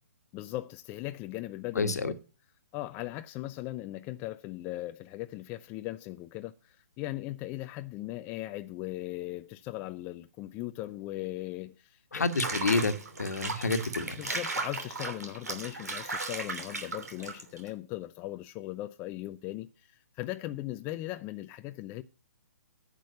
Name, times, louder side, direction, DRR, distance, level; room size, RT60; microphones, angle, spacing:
voice 1, 0.3-2.1 2.7-12.2 14.2-22.0, left 16 dB, 25° left, 0.5 m, -38 dB
voice 2, 1.7-2.1 12.1-12.9 13.2-14.2, left 3 dB, 75° left, 1.5 m, -28 dB
Water / Bathtub (filling or washing), 12.2-17.7, right 3 dB, 75° right, 3.0 m, -36 dB
10.5 x 6.2 x 6.7 m
figure-of-eight pair, 130°, 9 cm